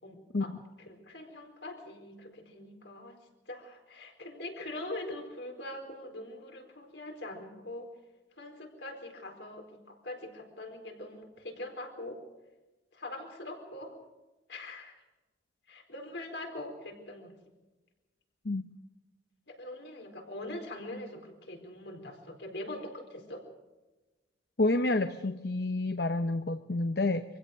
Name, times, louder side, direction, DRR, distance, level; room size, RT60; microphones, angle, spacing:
voice 1, 0.0-0.5 0.8-3.2 3.5-7.9 8.4-12.2 12.9-13.9 14.5-14.9 15.7-17.4 19.5-23.4, left 1 dB, 75° left, 3 dB, 4.4 m, -43 dB
voice 2, 24.6-27.2, left 2 dB, 60° left, 9 dB, 0.8 m, -29 dB
24.5 x 16.0 x 6.6 m, 1.1 s
head